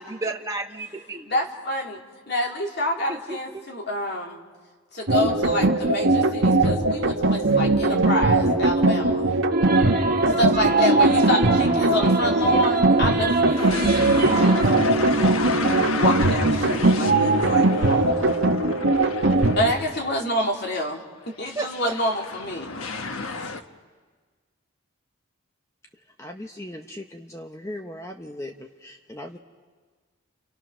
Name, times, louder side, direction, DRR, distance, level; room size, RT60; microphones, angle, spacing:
voice 1, 0.0-1.3 3.1-3.6 12.2-12.6 21.5-21.9, right 2 dB, 15° right, 2 dB, 1.4 m, -33 dB
voice 2, 1.3-2.0 2.3-4.4 4.9-9.3 10.4-15.5 16.0-18.3 19.6-21.0 21.4-22.7, left 1 dB, 50° left, 1 dB, 2.9 m, -28 dB
sound 1, 5.1-19.7, right 2 dB, 75° right, 1.6 m, -20 dB
sound 2, 9.5-15.0, right 3 dB, 35° right, 2.3 m, -26 dB
sound 3, 13.6-20.1 20.5-20.6 21.4-23.6, left 3 dB, 90° left, 1.2 m, -32 dB
voice 3, 26.2-29.4, left 1 dB, 15° left, 4 dB, 0.8 m, -38 dB
30.0 x 29.0 x 6.2 m, 1.5 s
head